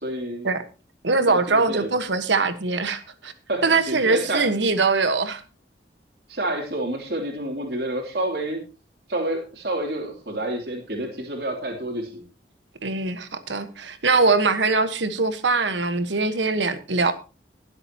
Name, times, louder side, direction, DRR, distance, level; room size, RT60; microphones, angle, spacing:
voice 1, 0.0-0.5 1.3-1.9 3.5-4.4 6.3-8.6 9.1-12.2, right 1 dB, 60° right, 3.0 m, -29 dB
voice 2, 1.0-3.3 3.6-5.4 12.8-17.1, right 3 dB, 85° right, 1.3 m, -22 dB
21.5 x 7.8 x 2.9 m
head